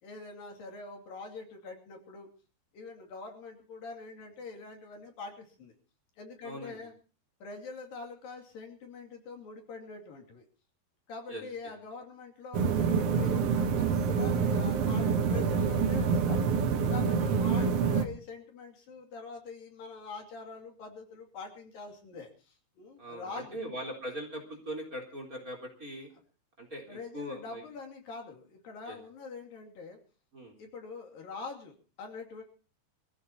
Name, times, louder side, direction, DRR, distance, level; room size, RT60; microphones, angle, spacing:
voice 1, 0.0-2.3 2.7-5.7 6.2-6.9 7.4-10.5 11.1-16.5 16.9-23.6 26.9-30.0 30.6-32.4, left 4 dB, 65° left, 2 dB, 4.3 m, -44 dB
voice 2, 6.4-6.8 11.3-11.7 17.5-17.7 23.0-26.1 26.6-27.6 28.9-29.0 30.3-30.5, equal, 20° right, 3 dB, 3.9 m, -41 dB
sound 1, 12.5-18.0, right 5 dB, 80° right, 1.4 m, -27 dB
25.0 x 15.5 x 2.9 m, 0.36 s
omnidirectional pair, 4.5 m